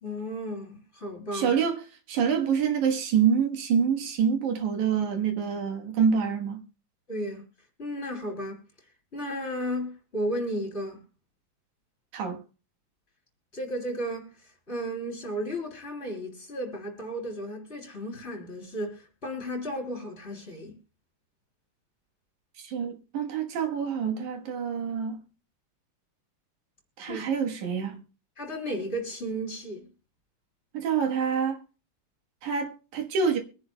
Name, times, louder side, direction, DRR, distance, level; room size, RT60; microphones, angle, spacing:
voice 1, 0.0-1.5 7.1-7.4 7.8-8.6 9.1-11.0 13.5-14.3 14.7-20.7 27.1-27.3 28.4-29.9, equal, 20° left, 3.1 m, -34 dB
voice 2, 1.3-1.8 2.1-6.6 12.1-12.4 22.6-25.2 27.0-28.0 30.7-31.6 32.4-33.4, right 7 dB, 85° right, 2.9 m, -26 dB
23.0 x 10.5 x 2.3 m
omnidirectional pair, 3.3 m